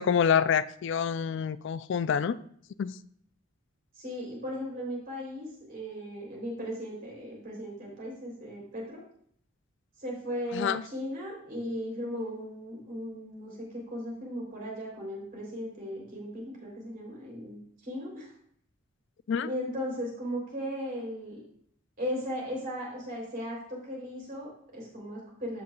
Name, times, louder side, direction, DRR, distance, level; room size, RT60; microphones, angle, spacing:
voice 1, 0.0-2.4 2.8-2.9 10.5-10.8 19.3-19.5, left 7 dB, 60° left, 16 dB, 0.3 m, -27 dB
voice 2, 3.9-9.0 10.0-18.3 19.4-21.4 22.0-25.6, equal, 45° right, -3 dB, 3.4 m, -37 dB
14.0 x 5.4 x 2.3 m, 0.64 s
head